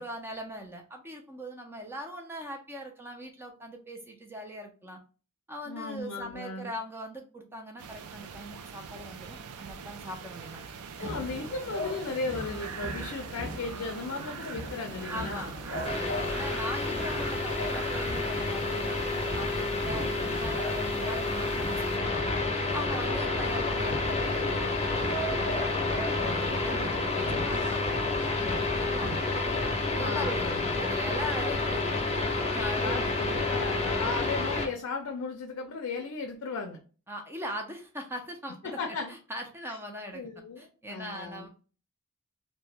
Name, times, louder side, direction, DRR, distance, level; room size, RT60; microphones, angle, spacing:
voice 1, 0.0-5.0 5.5-10.6 11.0-11.1 15.1-22.2 22.7-24.8 25.4-27.8 28.5-29.2 29.9-31.9 32.5-33.1 37.1-38.8 39.1-40.3 40.6-41.5, equal, 10° right, 3 dB, 0.4 m, -40 dB
voice 2, 5.7-6.7 11.0-15.6 20.0-20.4 30.0-30.8 32.8-36.8 38.6-39.1 39.7-39.8 40.1-41.5, left 4 dB, 65° left, 3 dB, 0.5 m, -36 dB
sound 1, 7.8-22.0, right 6 dB, 85° right, 0.4 m, -43 dB
sound 2, 11.0-29.2, equal, 55° right, 0.8 m, -40 dB
sound 3, 15.8-34.7, left 3 dB, 30° left, 0.7 m, -29 dB
2.7 x 2.1 x 3.2 m, 0.37 s
head